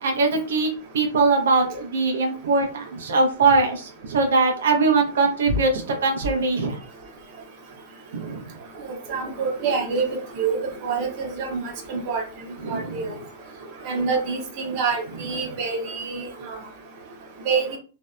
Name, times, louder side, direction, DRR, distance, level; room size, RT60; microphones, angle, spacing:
voice 1, 0.0-6.8 8.1-8.5 12.6-13.2 15.1-15.2, right 3 dB, 85° right, 2 dB, 0.6 m, -22 dB
voice 2, 8.8-11.6 11.9-12.2 12.7-13.1 13.8-16.5 17.5-17.8, right 5 dB, 40° right, 3 dB, 0.6 m, -26 dB
2.6 x 2.1 x 2.3 m, 0.37 s
supercardioid pair, 165°, 0 cm